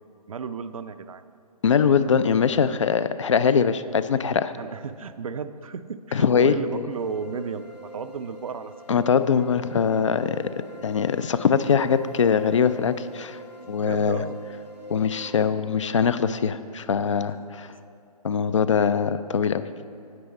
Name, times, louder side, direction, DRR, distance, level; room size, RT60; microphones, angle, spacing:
voice 1, 0.3-1.2 4.6-8.7 9.4-9.5 10.7-10.8 13.2-14.4 17.7-17.8, right 5 dB, 60° right, 12 dB, 0.4 m, -34 dB
voice 2, 1.6-4.5 6.1-6.8 8.9-10.5 10.8-13.4 13.7-14.2 14.9-17.7 18.2-19.6, left 6 dB, 50° left, 13 dB, 0.4 m, -22 dB
sound 1, 6.9-15.5, equal, 85° left, 1.1 m, -44 dB
9.5 x 7.9 x 4.2 m, 2.6 s
figure-of-eight pair, 135°, 20 cm